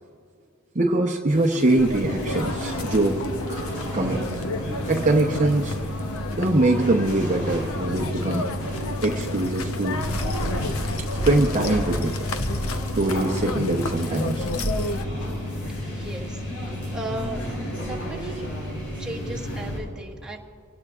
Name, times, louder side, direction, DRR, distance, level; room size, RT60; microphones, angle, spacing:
voice 1, 0.7-3.2 3.5-3.7 3.9-4.3 4.9-5.8 6.4-8.4 9.0-10.0 10.9-12.2 12.9-14.5 15.2-15.3, right 2 dB, 35° right, 1 dB, 0.8 m, -23 dB
sound 1, 1.3-15.0, left 3 dB, 65° left, 0.8 m, -33 dB
sound 2, 1.8-19.8, equal, 80° left, 4.6 m, -30 dB
voice 2, 15.9-16.4 16.9-17.4 17.9-18.5 19.0-20.4, right 1 dB, 5° right, -4 dB, 1.5 m, -35 dB
25.0 x 18.0 x 2.5 m, 2.2 s
head